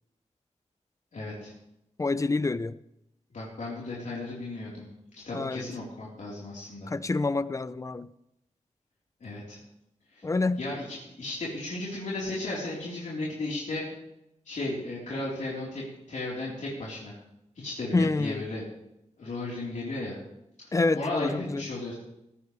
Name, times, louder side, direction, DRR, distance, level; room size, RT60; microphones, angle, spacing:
voice 1, 1.1-1.5 3.3-4.9 5.2-6.9 9.2-9.6 10.1-10.3 10.6-13.8 14.5-17.1 17.6-18.6 19.2-20.2 20.9-22.0, left 2 dB, 75° left, -6 dB, 4.2 m, -35 dB
voice 2, 2.0-2.7 5.3-5.7 6.9-8.1 10.2-10.6 17.9-18.5 20.7-21.6, left 3 dB, 25° left, 15 dB, 0.6 m, -27 dB
18.0 x 14.5 x 3.4 m, 0.85 s
wide cardioid pair, 115°, 13 cm